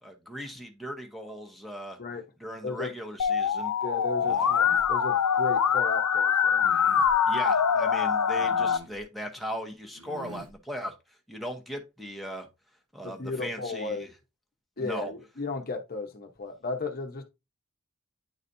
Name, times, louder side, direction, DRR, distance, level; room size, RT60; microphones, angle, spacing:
voice 1, 0.0-2.0 2.4-3.7 4.3-4.5 7.2-10.9 11.3-12.5 12.9-14.1 14.8-15.1, equal, ahead, 0.9 m, -38 dB
Musical instrument, 3.2-8.8, left 7 dB, 85° left, 0.6 m, -24 dB
voice 2, 3.8-6.6 13.0-14.0 14.8-17.2, left 3 dB, 40° left, 0.8 m, -35 dB
sound 1, 4.2-4.9 6.5-7.1 8.3-9.0 9.9-10.5, right 1 dB, 60° right, 1.6 m, -47 dB
9.5 x 4.0 x 2.6 m
head